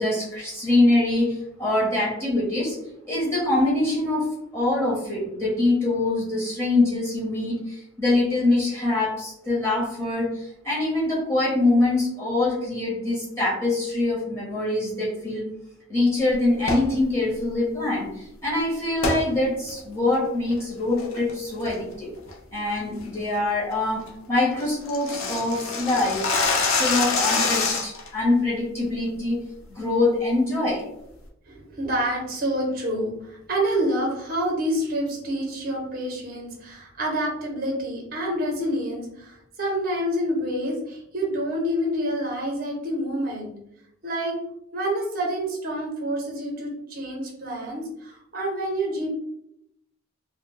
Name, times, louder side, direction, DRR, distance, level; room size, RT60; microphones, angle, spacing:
voice 1, 0.0-2.7 3.1-15.5 15.9-22.1 22.5-26.3 26.7-29.4 29.7-30.9, left 2 dB, 10° left, -7 dB, 0.9 m, -24 dB
sound 1, 16.6-16.9 19.0-19.2 19.7-19.8 20.3-20.6 21.0-21.3 21.7-21.9 22.3-22.4 22.8-23.0 23.4-23.5 23.8-23.9 24.1-24.2 24.4-28.1, left 4 dB, 70° left, 0.5 m, -25 dB
voice 2, 31.5-43.5 44.0-44.4 44.7-49.1, equal, 40° right, -1 dB, 0.7 m, -27 dB
2.2 x 2.1 x 3.7 m, 0.79 s
head